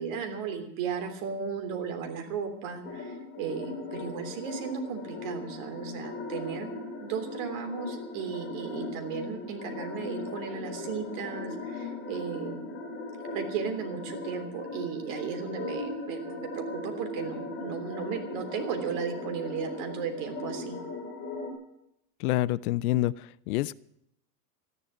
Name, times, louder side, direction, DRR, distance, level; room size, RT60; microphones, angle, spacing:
voice 1, 0.0-6.7 7.0-12.8 13.3-20.8, right 6 dB, 55° right, 6 dB, 3.4 m, -35 dB
sound 1, 2.8-21.5, left 2 dB, 20° left, 3.8 m, -39 dB
voice 2, 22.2-23.1 23.5-23.7, left 15 dB, 70° left, 19 dB, 0.7 m, -26 dB
13.5 x 11.0 x 9.2 m, 0.75 s
supercardioid pair, 165°, 45 cm